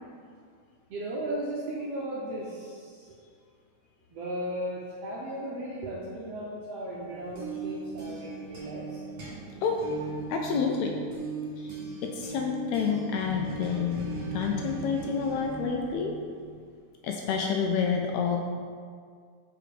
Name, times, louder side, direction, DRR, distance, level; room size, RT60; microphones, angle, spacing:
voice 1, 0.9-3.2 4.1-9.0, right 1 dB, 70° right, -5 dB, 1.5 m, -36 dB
sound 1, 7.0-16.7, right 4 dB, 50° right, 2.1 m, -39 dB
voice 2, 10.3-10.9 12.2-16.1 17.0-18.4, left 6 dB, 80° left, 2 dB, 1.6 m, -28 dB
5.0 x 4.9 x 4.9 m, 2.1 s
omnidirectional pair, 3.5 m